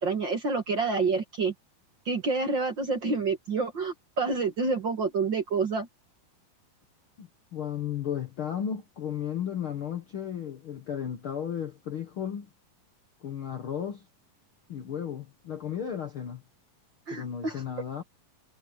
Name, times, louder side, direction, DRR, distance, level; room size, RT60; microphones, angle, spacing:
voice 1, 0.0-1.5 2.1-5.9 17.1-17.6, right 4 dB, 40° right, 1.9 m, -28 dB
voice 2, 7.2-12.5 13.2-14.0 14.7-16.4 17.1-18.0, left 9 dB, 55° left, 1.5 m, -34 dB
omnidirectional pair, 4.1 m